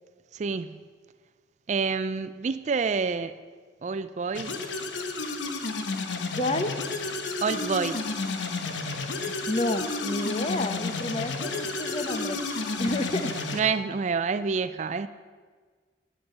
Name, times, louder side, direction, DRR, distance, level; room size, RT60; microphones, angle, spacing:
voice 1, 0.3-0.8 1.7-3.3 3.8-4.6 7.4-8.0 13.5-15.1, right 5 dB, 40° right, 0.3 m, -28 dB
sound 1, 4.3-13.6, left 3 dB, 80° left, 1.1 m, -31 dB
voice 2, 6.3-6.8 9.2-12.4 12.8-13.6, left 1 dB, 35° left, 0.7 m, -30 dB
9.9 x 8.8 x 6.6 m
head